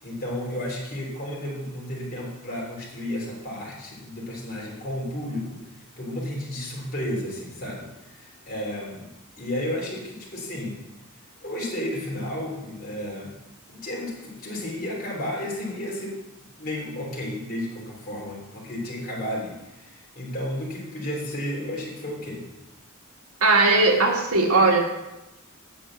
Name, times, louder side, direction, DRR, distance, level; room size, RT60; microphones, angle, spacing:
voice 1, 0.0-5.6 6.0-9.1 9.4-10.8 11.4-13.3 13.7-16.1 16.6-22.5, left 1 dB, 45° left, -3 dB, 3.0 m, -32 dB
voice 2, 23.4-24.8, right 3 dB, 85° right, 1 dB, 1.7 m, -18 dB
8.9 x 5.0 x 7.6 m, 0.96 s
head